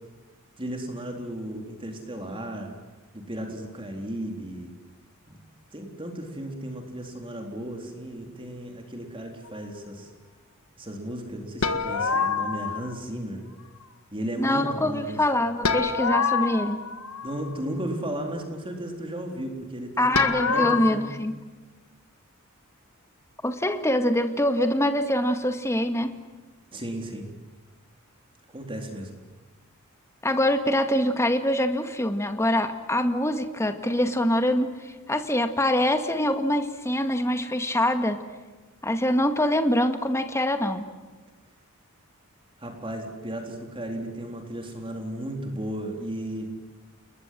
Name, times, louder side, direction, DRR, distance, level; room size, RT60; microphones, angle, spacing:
voice 1, 0.6-2.7 3.1-4.7 5.3-5.4 5.7-10.1 10.8-13.4 14.1-15.2 17.2-20.2 20.5-21.1 26.7-27.2 28.5-29.1 42.6-46.6, right 1 dB, 25° right, 3 dB, 3.9 m, -34 dB
sound 1, 11.6-12.9 15.6-17.6 20.1-20.9, left 5 dB, 80° left, 1.8 m, -26 dB
voice 2, 14.4-16.9 20.0-21.4 23.4-26.2 30.2-38.2 38.8-40.9, left 1 dB, 15° left, 7 dB, 2.0 m, -24 dB
29.5 x 22.0 x 7.8 m, 1.3 s
head